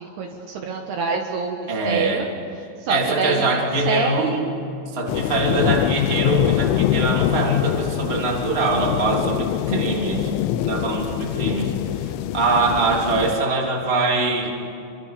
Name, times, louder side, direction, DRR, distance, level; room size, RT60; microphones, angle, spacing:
voice 1, 0.0-2.3 2.8-3.6 3.8-4.6 9.7-9.8, right 4 dB, 65° right, 2 dB, 3.2 m, -26 dB
voice 2, 1.7-2.2 2.9-4.3 4.9-10.3 10.6-11.7 12.0-14.5, right 3 dB, 15° right, -1 dB, 2.8 m, -23 dB
sound 1, 5.1-13.4, left 12 dB, 85° left, 3.2 m, -24 dB
26.0 x 25.0 x 6.8 m, 2.7 s
omnidirectional pair, 5.4 m